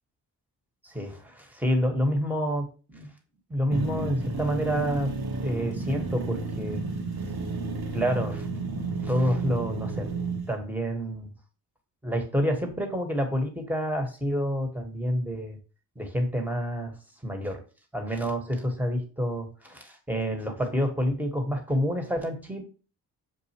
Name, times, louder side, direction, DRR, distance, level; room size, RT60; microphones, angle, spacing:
voice 1, 0.8-3.1 3.5-5.1 5.4-6.8 7.9-8.5 9.0-10.1 10.5-11.3 12.0-15.6 15.9-17.0 17.2-17.6 17.9-22.6, equal, 5° right, 3 dB, 1.3 m, -28 dB
sound 1, 3.7-10.5, right 3 dB, 50° right, 1.1 m, -32 dB
6.2 x 2.4 x 2.9 m, 0.36 s
supercardioid pair, 40°, 46 cm